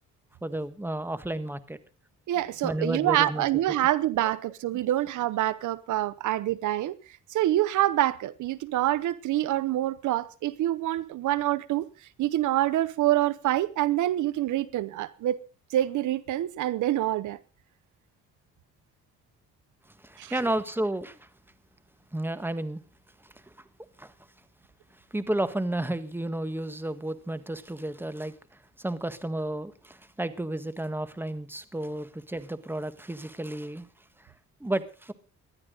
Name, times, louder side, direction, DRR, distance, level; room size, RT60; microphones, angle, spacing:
voice 1, 0.4-1.8 2.6-3.8 20.0-21.3 22.1-22.8 23.2-23.3 24.0-24.1 25.1-33.9 34.2-34.3 34.6-35.1, right 1 dB, 5° right, 1.6 m, -32 dB
voice 2, 2.3-7.0 7.3-11.9 12.2-15.4 15.7-17.4 20.2-20.3, right 14 dB, 75° right, 0.9 m, -26 dB
19.5 x 12.5 x 3.9 m
cardioid pair, 90°, 30 cm